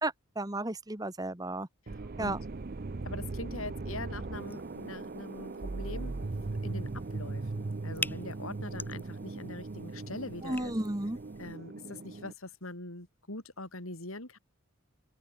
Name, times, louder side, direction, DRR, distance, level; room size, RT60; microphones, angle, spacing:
voice 1, 0.0-1.7 2.2-2.4 10.4-11.2, right 2 dB, 15° right, 1.4 m, -33 dB
voice 2, 1.9-2.4 3.0-10.7 11.4-14.4, left 2 dB, 75° left, 5.0 m, -43 dB
sound 1, 1.9-12.3, right 3 dB, 45° right, 0.6 m, -39 dB
sound 2, 4.3-11.6, left 2 dB, 10° left, 1.5 m, -46 dB
open air
head